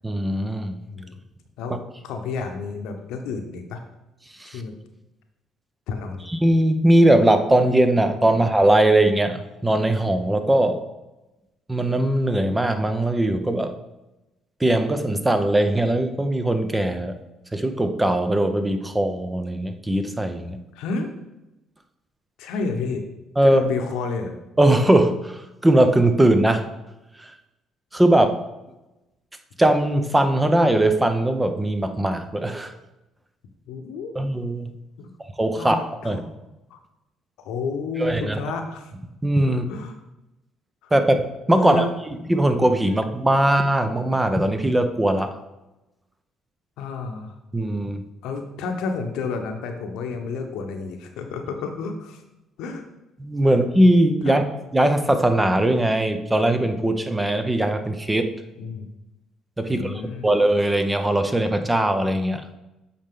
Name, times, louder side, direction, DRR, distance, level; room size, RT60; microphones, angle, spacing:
voice 1, 0.0-0.8 4.4-4.6 6.3-10.8 11.7-13.7 14.6-17.1 17.5-20.6 23.4-23.6 24.6-26.7 27.2-27.3 27.9-28.4 29.6-32.7 34.1-34.7 35.2-36.2 38.0-38.4 39.2-39.6 40.9-41.9 42.3-45.4 47.5-48.0 53.2-54.4 54.7-58.3 59.6-62.5, right 1 dB, 15° right, 8 dB, 0.7 m, -20 dB
voice 2, 0.9-1.2 1.6-3.8 4.5-4.7 5.9-6.3 20.7-21.1 22.4-23.1 23.4-24.3 33.7-34.1 35.0-35.1 35.6-36.2 36.7-36.8 37.4-38.9 39.5-39.9 40.8-40.9 41.6-41.9 46.8-47.4 48.2-52.2 52.6-52.8 53.5-53.6 54.2-54.4 58.6-58.9 59.6-60.3, left 4 dB, 80° left, 5 dB, 0.9 m, -30 dB
8.4 x 4.2 x 3.8 m, 0.98 s
supercardioid pair, 70°, 0 cm